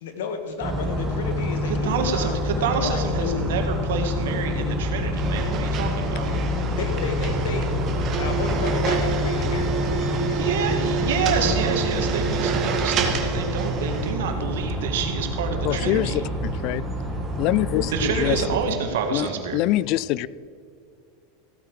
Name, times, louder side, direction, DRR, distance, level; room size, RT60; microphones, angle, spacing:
voice 1, 0.0-2.4 2.8-3.4 6.8-7.7 8.2-10.6 15.7-15.8, left 5 dB, 80° left, 7 dB, 1.7 m, -32 dB
sound 1, 0.6-18.6, left 1 dB, 10° right, 2.1 m, -27 dB
voice 2, 1.7-6.3 10.3-16.1 17.9-19.6, right 6 dB, 80° right, 4 dB, 2.0 m, -27 dB
sound 2, 5.2-14.1, right 6 dB, 35° right, 1.8 m, -28 dB
voice 3, 15.6-16.2 16.6-16.8 17.4-18.4 18.7-18.8 19.1-20.3, left 16 dB, 50° left, 21 dB, 0.3 m, -24 dB
15.5 x 8.8 x 4.9 m, 2.4 s
supercardioid pair, 125°, 0 cm